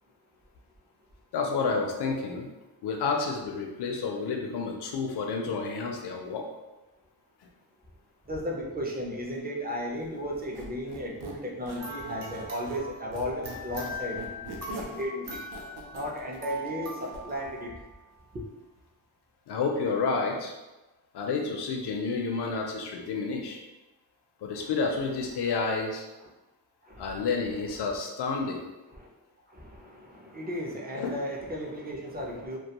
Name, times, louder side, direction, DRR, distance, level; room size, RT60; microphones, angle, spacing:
voice 1, 1.3-2.5 2.8-6.5 19.5-20.5 21.1-23.6 24.4-26.0 27.0-28.6 30.9-31.2, left 4 dB, 75° left, 1 dB, 0.5 m, -30 dB
voice 2, 8.3-14.2 14.7-15.4 15.9-17.7 18.3-18.4 24.5-24.7 26.8-27.3 27.7-28.0 28.9-29.1 29.5-32.6, equal, 25° right, -1 dB, 0.5 m, -35 dB
Squeak, 10.3-12.9 13.1-17.2, right 2 dB, 70° right, 0.6 m, -43 dB
sound 1, 11.8-18.3, left 1 dB, 40° right, 0.8 m, -41 dB
2.3 x 2.2 x 2.8 m, 1.1 s
wide cardioid pair, 80°, 41 cm